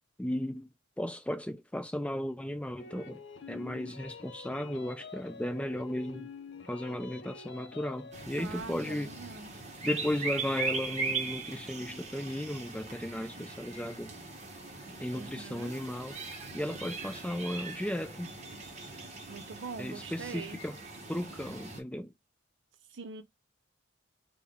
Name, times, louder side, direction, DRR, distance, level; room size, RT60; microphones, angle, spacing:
voice 1, 0.2-0.7 1.0-3.2 3.5-6.3 6.7-9.1 9.8-14.1 15.0-16.2 16.5-18.3 19.8-20.8 21.1-22.1, left 1 dB, 5° left, 0.4 m, -35 dB
sound 1, 2.8-8.3, left 5 dB, 60° left, 0.5 m, -47 dB
sound 2, 8.1-21.8, right 4 dB, 35° right, 0.8 m, -40 dB
voice 2, 8.4-9.6 15.1-15.8 19.3-20.6 22.9-23.2, right 4 dB, 60° right, 0.5 m, -43 dB
3.5 x 2.1 x 3.5 m
head